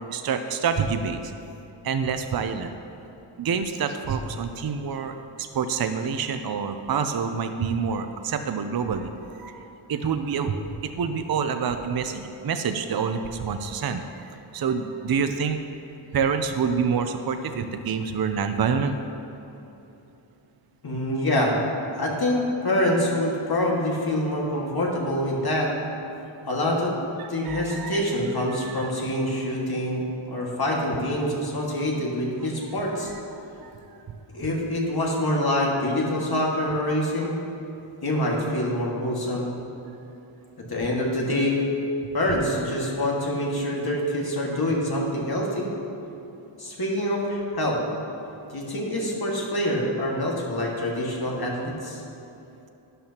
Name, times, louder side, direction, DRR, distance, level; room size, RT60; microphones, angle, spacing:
voice 1, 0.0-1.3 1.8-2.7 3.4-10.6 10.8-14.2 14.5-15.6 16.1-19.0 27.2-28.0 28.5-28.9 33.6-33.7, right 6 dB, 50° right, 7 dB, 0.5 m, -27 dB
voice 2, 20.8-21.6 22.0-25.7 26.5-27.0 27.3-33.1 34.3-37.4 38.0-39.5 40.7-41.6 42.1-45.7 46.6-47.8 48.5-52.0, left 1 dB, 50° left, -2 dB, 1.9 m, -25 dB
12.5 x 10.5 x 2.9 m, 2.9 s
wide cardioid pair, 105°, 49 cm